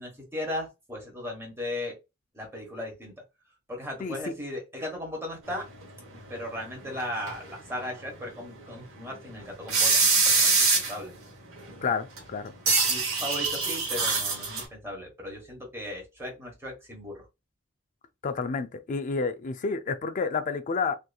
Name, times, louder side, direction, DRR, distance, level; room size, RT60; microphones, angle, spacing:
voice 1, 0.0-1.9 2.3-3.1 3.7-5.6 6.3-11.1 12.6-17.2, left 1 dB, 10° right, 1.2 m, -37 dB
sound 1, 5.8-7.0 7.3-7.4 7.8-7.9 8.4-8.5 9.2-9.3 9.4-9.5 9.7-11.1 11.6-11.8 12.2-12.3 12.7-14.6, right 4 dB, 65° right, 1.0 m, -24 dB
voice 2, 11.8-12.5 18.2-21.0, left 4 dB, 35° left, 0.3 m, -29 dB
2.8 x 2.6 x 2.3 m
head